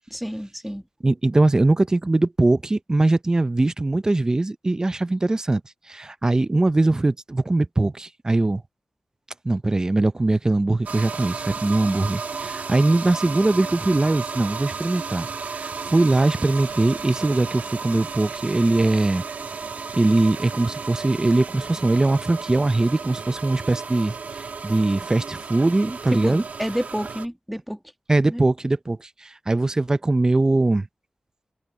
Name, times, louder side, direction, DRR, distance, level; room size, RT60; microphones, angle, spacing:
voice 1, 0.1-0.8 26.1-27.8 28.3-28.4, equal, ahead, 1.3 m, -29 dB
voice 2, 1.0-5.6 5.9-8.6 9.4-19.2 19.9-26.4 28.1-30.9, right 2 dB, 25° right, 0.5 m, -21 dB
sound 1, 10.9-27.3, right 5 dB, 85° right, 1.3 m, -33 dB
wide cardioid pair, 115°, 3 cm